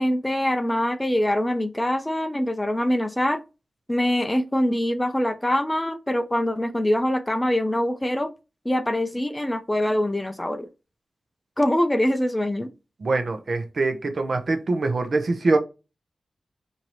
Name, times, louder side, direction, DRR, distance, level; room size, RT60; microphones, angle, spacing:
voice 1, 0.0-3.4 3.9-8.3 8.7-10.7 11.6-12.7, left 1 dB, 15° left, 0.4 m, -24 dB
voice 2, 13.0-15.6, right 3 dB, 55° right, 0.7 m, -23 dB
4.5 x 2.7 x 3.0 m
wide cardioid pair, 115°, 0 cm